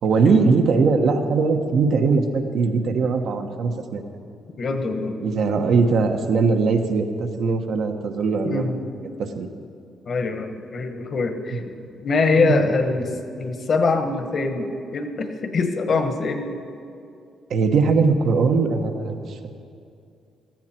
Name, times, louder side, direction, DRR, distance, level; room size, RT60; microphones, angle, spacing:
voice 1, 0.0-4.0 5.2-8.7 9.3-9.5 12.4-12.6 17.5-19.5, right 4 dB, 65° right, 5 dB, 1.2 m, -20 dB
voice 2, 4.6-5.2 8.4-8.8 10.0-16.6, left 4 dB, 50° left, 7 dB, 1.4 m, -24 dB
16.5 x 14.0 x 4.5 m, 2.5 s
cardioid pair, 90°, 0 cm